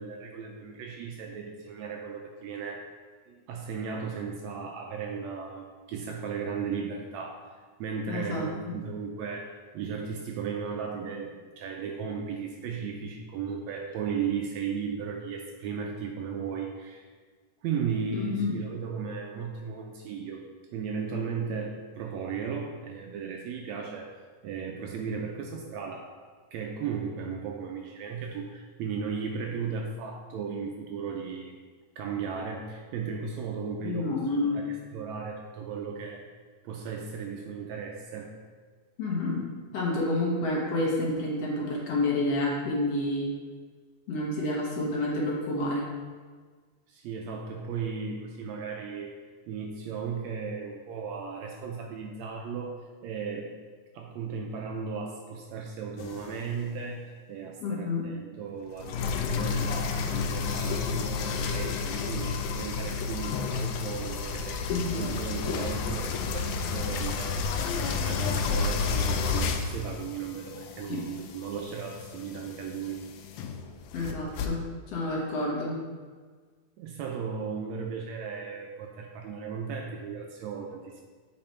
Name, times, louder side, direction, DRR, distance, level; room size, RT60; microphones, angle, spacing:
voice 1, 0.0-2.8 3.3-17.1 17.6-20.4 20.7-24.1 24.4-26.1 26.5-31.6 32.0-34.1 34.4-36.3 36.6-38.3 46.9-49.1 49.5-52.8 53.0-53.5 53.9-73.0 75.1-75.2 76.8-81.0, right 6 dB, 75° right, 1 dB, 1.7 m, -36 dB
voice 2, 8.1-8.7 18.1-18.5 33.8-34.6 39.0-43.3 44.1-45.9 57.6-58.1 64.7-65.1 70.9-71.0 73.9-74.6 74.9-75.8, left 2 dB, 60° left, -4 dB, 2.2 m, -29 dB
sound 1, 56.0-56.5 58.7-74.5, left 5 dB, 85° left, 2.0 m, -31 dB
7.6 x 4.3 x 4.4 m, 1.5 s
omnidirectional pair, 3.5 m